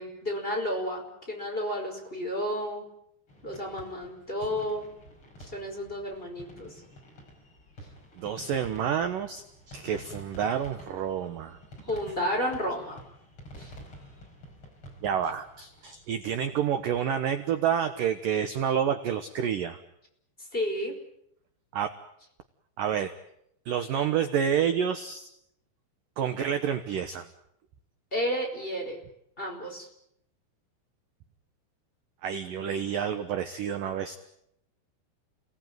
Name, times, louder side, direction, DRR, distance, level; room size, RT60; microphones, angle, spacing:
voice 1, 0.0-2.9 3.4-4.9 5.5-6.8 11.9-13.0 13.6-13.7 20.5-20.9 28.1-29.0 29.4-29.9, equal, 10° left, 0 dB, 4.9 m, -31 dB
sound 1, 3.3-18.2, equal, 30° left, 5.7 m, -50 dB
voice 2, 8.2-11.6 11.8-11.9 15.0-19.8 21.7-21.9 22.8-23.1 23.7-25.3 26.2-27.3 32.2-34.2, right 8 dB, 70° right, 8 dB, 2.1 m, -29 dB
30.0 x 19.0 x 9.5 m, 0.77 s
omnidirectional pair, 5.5 m